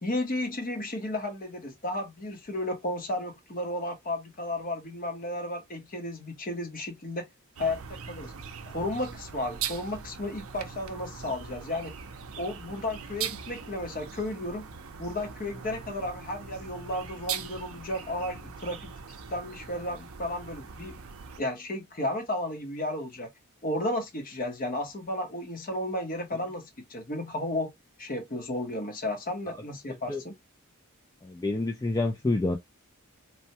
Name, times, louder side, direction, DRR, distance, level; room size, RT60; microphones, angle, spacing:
voice 1, 0.0-7.3 7.6-8.3 8.6-11.9 12.4-14.7 15.0-18.9 19.3-21.0 21.4-23.3 23.6-27.7 28.0-30.3, left 1 dB, 40° left, 0.9 m, -33 dB
sound 1, 7.6-21.4, right 7 dB, 70° right, 0.5 m, -41 dB
voice 2, 31.2-32.6, left 2 dB, 15° left, 0.3 m, -28 dB
3.2 x 2.1 x 2.7 m
head